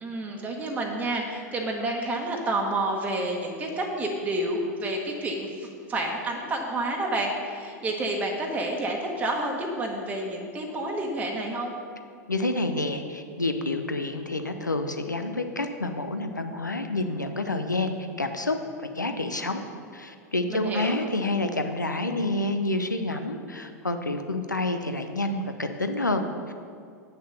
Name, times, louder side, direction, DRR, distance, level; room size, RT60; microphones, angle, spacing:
voice 1, 0.0-11.7 20.5-21.0, right 1 dB, 15° right, -1 dB, 1.3 m, -29 dB
voice 2, 12.3-19.6 19.9-26.5, left 2 dB, 90° left, 7 dB, 0.6 m, -28 dB
8.3 x 6.4 x 6.7 m, 2.2 s
figure-of-eight pair, 90°, 10 cm